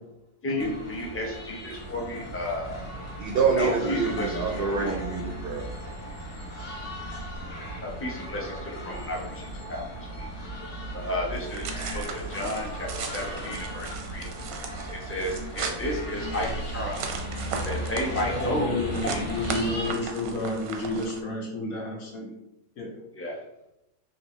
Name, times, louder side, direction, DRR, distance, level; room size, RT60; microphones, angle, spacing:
voice 1, 0.4-2.9 3.6-5.0 7.8-10.3 10.9-14.3 14.9-17.1 17.7-18.7 19.0-19.2 23.1-23.4, left 1 dB, 20° left, -1 dB, 0.3 m, -32 dB
sound 1, 0.6-19.9, right 1 dB, 55° left, 1.4 m, -36 dB
voice 2, 3.2-5.6, right 5 dB, 65° right, 1 dB, 0.6 m, -26 dB
sound 2, 11.3-21.2, right 4 dB, 90° right, 1.1 m, -37 dB
voice 3, 18.3-22.3 22.8-22.9, left 2 dB, 85° left, -1 dB, 1.5 m, -30 dB
4.4 x 3.0 x 3.0 m, 0.87 s
omnidirectional pair, 1.5 m